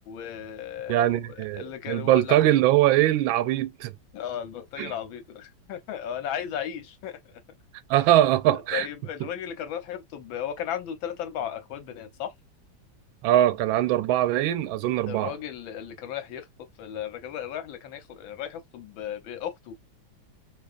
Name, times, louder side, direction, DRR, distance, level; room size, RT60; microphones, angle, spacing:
voice 1, 0.1-2.4 4.1-7.4 8.7-12.3 15.1-16.5 16.8-19.8, left 9 dB, 80° left, 1.6 m, -35 dB
voice 2, 0.9-3.9 4.8-4.9 7.9-8.9 13.2-15.3, right 13 dB, 90° right, 1.4 m, -22 dB
3.9 x 2.9 x 2.4 m
omnidirectional pair, 2.1 m